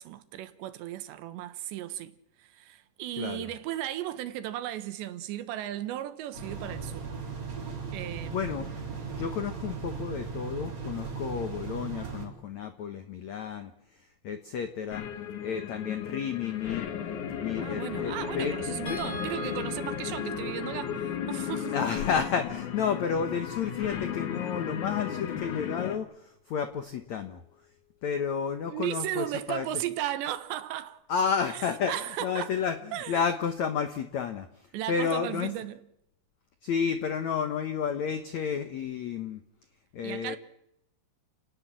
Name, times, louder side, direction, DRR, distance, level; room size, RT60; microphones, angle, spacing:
voice 1, 0.0-7.1 7.9-8.7 17.6-21.8 28.6-31.0 31.5-31.6 31.9-32.5 32.9-33.3 34.7-35.8 40.0-40.4, right 13 dB, 75° right, 3.3 m, -36 dB
voice 2, 3.2-3.5 8.3-8.7 9.1-15.0 15.4-16.8 17.4-18.6 18.9-19.0 21.7-27.4 28.0-29.7 31.1-35.5 36.6-39.4 39.9-40.4, left 7 dB, 80° left, 1.6 m, -31 dB
sound 1, 6.3-12.3, right 5 dB, 40° right, 5.0 m, -37 dB
sound 2, 14.9-26.0, left 8 dB, 55° left, 2.4 m, -35 dB
sound 3, 18.9-25.2 26.7-26.9 27.2-27.4, left 3 dB, 25° left, 7.9 m, -44 dB
30.0 x 18.5 x 7.6 m
omnidirectional pair, 5.2 m